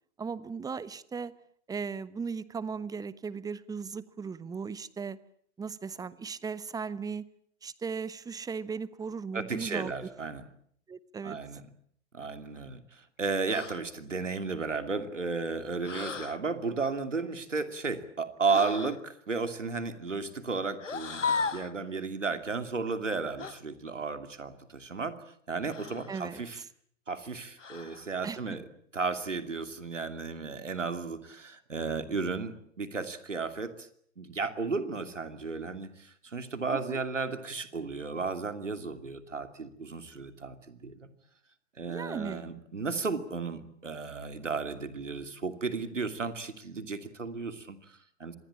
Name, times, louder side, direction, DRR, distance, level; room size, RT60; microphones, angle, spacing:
voice 1, 0.2-1.3 1.7-5.2 5.6-7.2 7.6-9.9 10.9-11.4 26.1-26.4 28.2-28.4 36.7-37.0 41.8-42.5, right 5 dB, 10° right, 18 dB, 1.1 m, -37 dB
voice 2, 9.3-10.5 11.2-11.6 12.1-25.1 25.5-26.6 27.1-28.6 28.9-33.9 34.2-41.1 41.8-48.3, right 4 dB, 85° right, 9 dB, 2.8 m, -34 dB
sound 1, 13.5-13.9 15.8-16.4 18.5-19.0 20.8-21.7 23.4-23.6 25.7-26.2 27.6-28.1, left 5 dB, 85° left, 1.4 m, -35 dB
26.0 x 20.5 x 8.8 m, 0.65 s
figure-of-eight pair, 105°, 36 cm